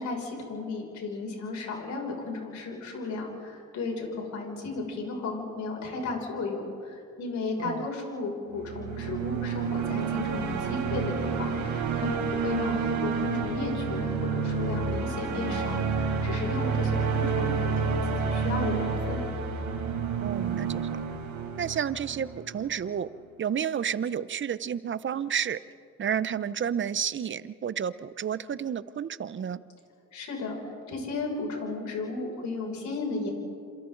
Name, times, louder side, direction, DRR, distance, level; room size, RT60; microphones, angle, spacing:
voice 1, 0.0-19.3 30.1-30.6 30.9-33.3, left 3 dB, 70° left, 0 dB, 6.5 m, -34 dB
sound 1, 8.5-22.7, right 5 dB, 75° right, 4.0 m, -29 dB
voice 2, 20.2-21.0 21.6-23.1 23.4-25.6 26.0-29.6, right 8 dB, 40° right, 16 dB, 0.8 m, -31 dB
28.5 x 28.0 x 4.0 m, 2.4 s
cardioid pair, 90°, 30 cm